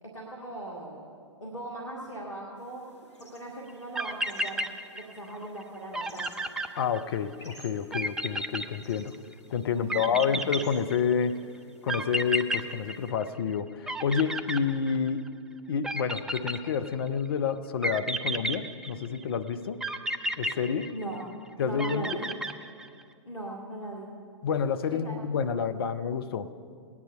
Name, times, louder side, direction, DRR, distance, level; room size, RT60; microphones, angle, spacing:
voice 1, 0.0-1.1 1.4-2.8 3.2-4.6 4.9-6.5 9.7-10.5 20.9-21.3 21.6-22.3 23.3-24.1 25.0-25.2, right 1 dB, 90° left, -3 dB, 1.7 m, -39 dB
sound 1, 2.6-13.1, equal, 70° left, 2.0 m, -56 dB
sound 2, 3.7-3.8 4.0-5.3 5.6-5.7 5.9-7.4 7.9-9.3 9.9-11.2 11.9-13.6 13.9-15.3 15.8-17.1 17.8-19.2 19.8-21.3 21.8-23.0, right 1 dB, 5° right, 0.4 m, -32 dB
voice 2, 6.8-9.1 9.5-11.4 11.8-15.2 15.7-19.8 20.4-20.9 21.6-22.3 24.4-26.5, left 6 dB, 50° left, 10 dB, 0.7 m, -29 dB
17.5 x 9.7 x 5.5 m, 2.3 s
figure-of-eight pair, 110°, 16 cm